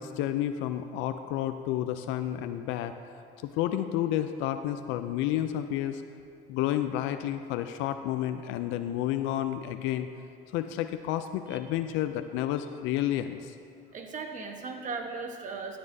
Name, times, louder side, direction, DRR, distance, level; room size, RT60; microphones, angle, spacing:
voice 1, 0.0-2.9 3.4-6.0 6.5-10.1 10.5-13.5, left 12 dB, 80° left, 9 dB, 0.4 m, -30 dB
voice 2, 13.9-15.8, right 4 dB, 40° right, 4 dB, 1.1 m, -37 dB
13.0 x 9.6 x 2.7 m, 2.5 s
cardioid pair, 110°, 19 cm